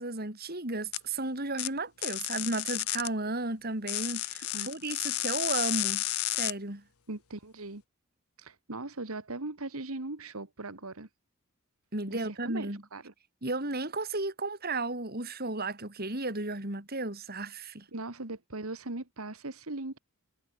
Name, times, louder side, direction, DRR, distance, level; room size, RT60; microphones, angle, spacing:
voice 1, 0.0-6.0 6.3-6.8 11.9-12.8 13.4-17.8, right 2 dB, 45° right, 4.7 m, -34 dB
sound 1, 0.9-1.0 1.6-1.7 2.0-3.1 3.9-6.5, left 16 dB, 90° left, 1.1 m, -32 dB
voice 2, 7.1-7.8 8.4-11.1 12.1-13.1 17.9-20.0, right 2 dB, 80° right, 2.0 m, -39 dB
head